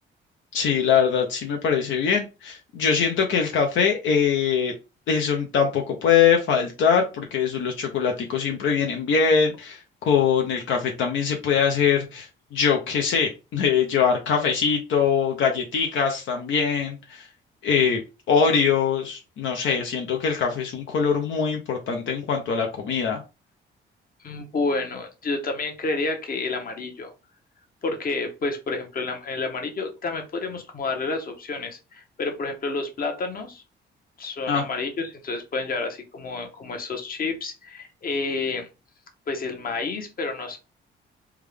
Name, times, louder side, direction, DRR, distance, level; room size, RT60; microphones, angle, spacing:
voice 1, 0.5-4.7 5.1-17.3 17.6-18.0 18.3-23.2 34.5-34.6, left 6 dB, 75° left, 2 dB, 0.6 m, -22 dB
voice 2, 24.2-27.1 27.8-33.6 34.2-38.7 39.3-40.6, left 3 dB, 45° left, 5 dB, 1.0 m, -29 dB
3.5 x 2.3 x 3.3 m, 0.29 s
cardioid pair, 90°, 20 cm